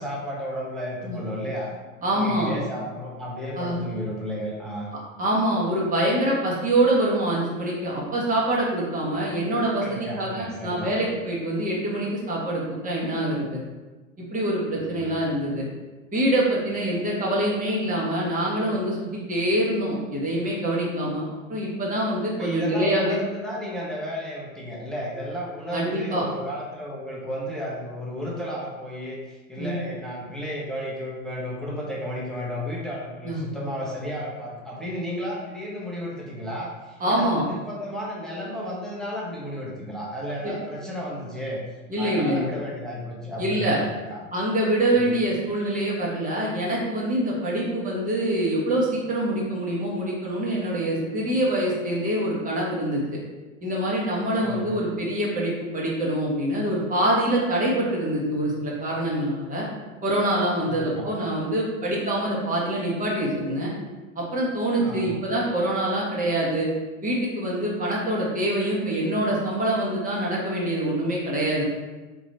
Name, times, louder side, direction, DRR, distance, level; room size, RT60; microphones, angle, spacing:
voice 1, 0.0-1.7 2.1-4.9 9.8-10.9 14.8-15.1 22.4-41.6 42.0-44.2 45.0-45.1 54.4-54.9 60.6-61.2 64.8-65.2, equal, ahead, -5 dB, 1.0 m, -33 dB
voice 2, 2.0-2.5 3.5-3.8 5.2-13.6 14.2-15.7 16.1-21.2 21.5-23.2 25.7-26.2 29.6-29.8 33.2-33.4 37.0-37.4 40.4-40.5 41.9-42.5 43.4-43.8 44.3-53.0 53.6-59.6 60.0-63.7 64.1-66.7 67.0-71.6, right 1 dB, 20° right, -4 dB, 1.4 m, -25 dB
3.9 x 3.0 x 4.1 m, 1.2 s
hypercardioid pair, 95°, 41 cm